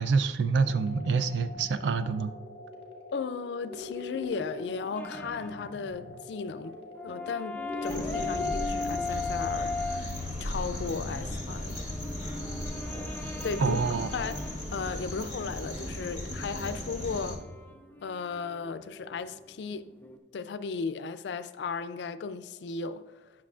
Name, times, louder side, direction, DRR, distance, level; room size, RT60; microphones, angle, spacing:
voice 1, 0.0-2.3 13.6-14.1, right 5 dB, 90° right, 0.4 m, -26 dB
sound 1, 0.6-8.6, left 3 dB, 35° left, 0.9 m, -43 dB
voice 2, 3.1-6.8 7.0-10.1 10.4-11.9 13.4-13.8 14.1-14.4 14.7-17.4 18.0-19.9 20.3-23.0, left 5 dB, 75° left, 0.4 m, -35 dB
sound 2, 4.9-5.8 6.1-6.2 6.5-10.0 10.9-20.2, left 3 dB, 10° left, 0.5 m, -39 dB
sound 3, 7.8-17.3, left 1 dB, 25° right, 1.9 m, -36 dB
9.9 x 6.0 x 2.4 m
head